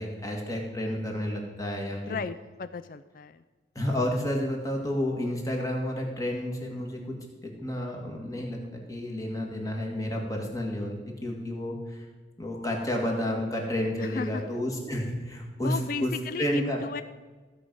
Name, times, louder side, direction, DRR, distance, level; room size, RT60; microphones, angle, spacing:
voice 1, 0.0-2.2 3.8-7.2 7.4-12.0 12.4-16.1 16.4-16.8, left 1 dB, 20° left, 0 dB, 2.0 m, -31 dB
voice 2, 2.0-3.4 14.0-14.4 15.6-17.0, left 4 dB, 45° left, 13 dB, 0.3 m, -35 dB
16.0 x 5.4 x 7.8 m, 1.3 s
head